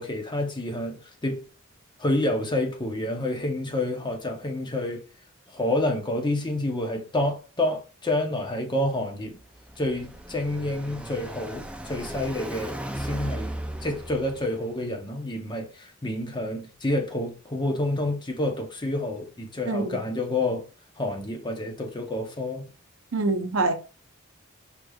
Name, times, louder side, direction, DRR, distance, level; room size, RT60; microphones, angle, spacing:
voice 1, 0.0-1.4 2.0-5.0 5.5-9.4 9.8-13.5 13.8-20.7 21.0-22.7, left 1 dB, 20° left, 0.7 m, -28 dB
Car passing by, 9.2-14.8, right 1 dB, 5° right, 0.3 m, -36 dB
voice 2, 19.7-20.0 23.1-23.7, right 3 dB, 75° right, 0.7 m, -25 dB
5.1 x 3.1 x 2.3 m
head